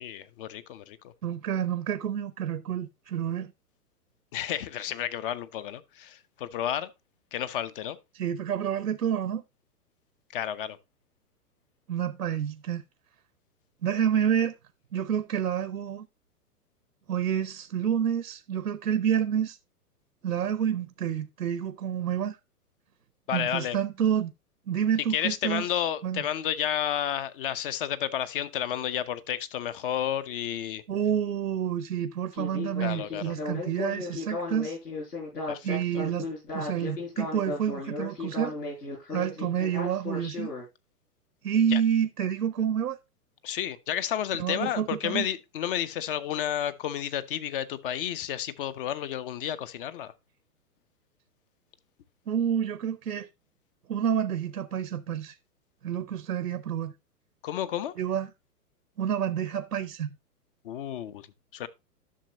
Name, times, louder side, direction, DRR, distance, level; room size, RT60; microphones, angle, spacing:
voice 1, 0.0-1.1 4.3-6.9 7.3-8.0 10.3-10.8 23.3-23.8 25.1-30.8 32.8-33.3 35.5-35.8 41.7-41.8 43.4-50.1 57.4-57.9 60.6-61.3 61.5-61.7, left 10 dB, 35° left, 0.8 m, -31 dB
voice 2, 1.2-3.5 8.1-9.4 11.9-12.8 13.8-14.5 14.9-16.1 17.1-19.6 20.2-22.4 23.3-24.3 24.7-25.6 26.0-26.2 30.9-34.8 35.6-38.5 39.1-40.5 41.4-43.0 44.4-45.3 52.3-53.3 53.9-55.4 55.8-56.9 58.0-58.3 59.0-60.1, right 9 dB, 75° right, 0.9 m, -28 dB
Speech synthesizer, 32.3-40.7, left 3 dB, 85° left, 6.3 m, -35 dB
11.0 x 6.6 x 2.9 m
figure-of-eight pair, 115°, 47 cm